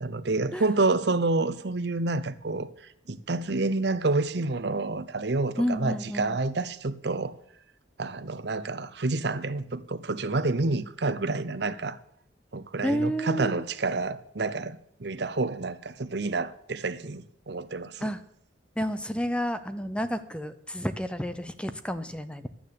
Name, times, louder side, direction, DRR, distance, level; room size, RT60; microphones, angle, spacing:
voice 1, 0.0-2.7 3.1-7.3 8.0-12.0 12.5-18.0, right 3 dB, 60° right, 0.8 m, -28 dB
voice 2, 5.6-6.4 12.8-13.6 18.0-18.2 18.8-22.5, equal, 5° left, 0.8 m, -30 dB
12.0 x 9.2 x 6.7 m
head